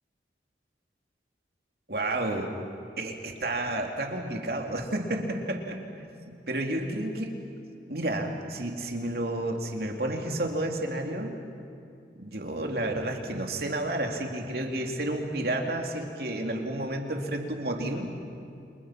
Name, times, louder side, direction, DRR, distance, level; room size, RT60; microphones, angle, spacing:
voice 1, 1.9-2.5 3.0-5.8 6.5-7.3 7.9-11.4 12.2-18.1, right 1 dB, 60° right, 2 dB, 3.0 m, -31 dB
30.0 x 27.0 x 6.0 m, 2.6 s
head